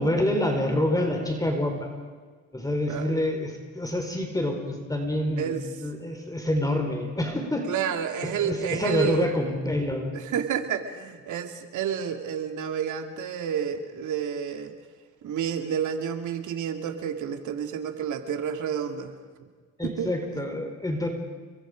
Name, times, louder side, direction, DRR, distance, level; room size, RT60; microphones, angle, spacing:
voice 1, 0.0-1.9 2.5-7.7 8.2-10.2 19.8-21.1, left 1 dB, 10° left, 3 dB, 4.4 m, -27 dB
voice 2, 7.7-9.3 10.1-14.7 15.2-19.1 19.8-20.4, right 8 dB, 75° right, 6 dB, 2.4 m, -30 dB
29.5 x 23.0 x 5.2 m, 1.5 s
cardioid pair, 90°, 30 cm